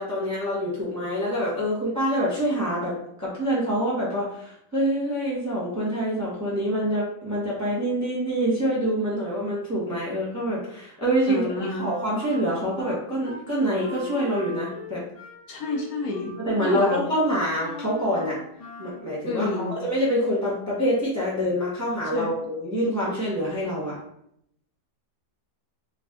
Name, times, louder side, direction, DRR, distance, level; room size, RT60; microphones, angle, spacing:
voice 1, 0.0-15.0 16.4-18.4 18.8-24.0, equal, 15° right, -6 dB, 0.8 m, -26 dB
voice 2, 11.3-11.9 15.5-16.3 16.6-17.0 19.3-19.8 22.1-22.3, left 3 dB, 70° left, -1 dB, 1.1 m, -29 dB
Wind instrument woodwind instrument, 11.7-13.4 13.8-19.1, left 2 dB, 40° left, 0.5 m, -40 dB
3.3 x 2.5 x 3.5 m, 0.72 s
omnidirectional pair, 1.8 m